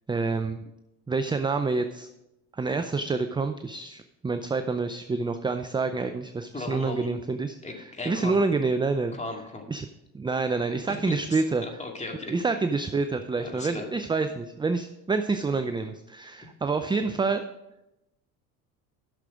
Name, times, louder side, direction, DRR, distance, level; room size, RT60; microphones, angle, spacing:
voice 1, 0.1-0.6 1.1-2.1 2.5-9.2 9.7-9.9 10.1-11.6 12.3-17.4, right 4 dB, 10° right, 9 dB, 0.5 m, -27 dB
voice 2, 6.5-7.1 7.6-8.4 9.1-9.7 11.1-12.3 13.4-13.9, left 2 dB, 15° left, 2 dB, 2.2 m, -36 dB
10.5 x 6.6 x 5.0 m, 0.92 s
hypercardioid pair, 75°, 39 cm